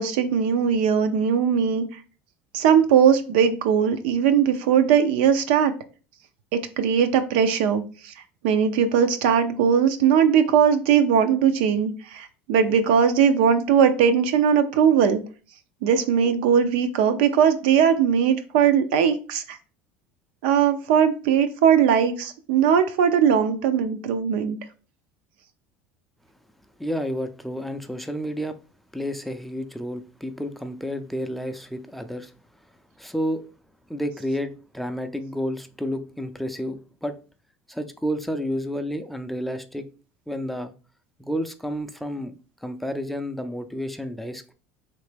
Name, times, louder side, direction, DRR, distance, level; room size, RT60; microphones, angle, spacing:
voice 1, 0.0-1.8 2.5-5.7 6.5-8.1 8.4-15.2 15.8-19.6 20.4-24.6, right 7 dB, 80° right, 0.5 m, -20 dB
voice 2, 26.8-28.6 28.9-32.3 33.0-33.4 33.9-37.2 37.7-39.9 40.3-40.7 41.2-44.5, equal, 5° left, 0.4 m, -30 dB
3.2 x 2.8 x 3.3 m
supercardioid pair, 105°, 6 cm